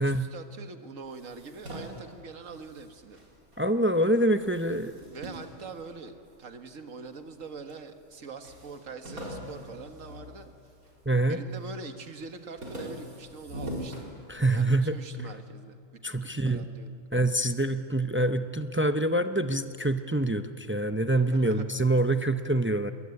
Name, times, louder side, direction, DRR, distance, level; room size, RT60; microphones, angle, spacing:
voice 1, 0.0-3.2 5.1-6.1 6.4-10.5 11.3-14.1 14.5-15.8 16.2-17.0 21.3-21.7, right 4 dB, 65° right, 7 dB, 1.9 m, -43 dB
sound 1, 1.0-3.7 4.0-6.5 7.1-7.8 8.1-8.2 8.4-11.0 11.4-11.9 12.2-14.8, equal, 85° right, 4.6 m, -42 dB
voice 2, 3.6-4.9 11.1-11.4 14.3-15.0 16.0-16.6 17.1-22.9, right 1 dB, 15° right, 9 dB, 0.4 m, -25 dB
26.5 x 21.0 x 9.7 m, 2.3 s
omnidirectional pair, 1.5 m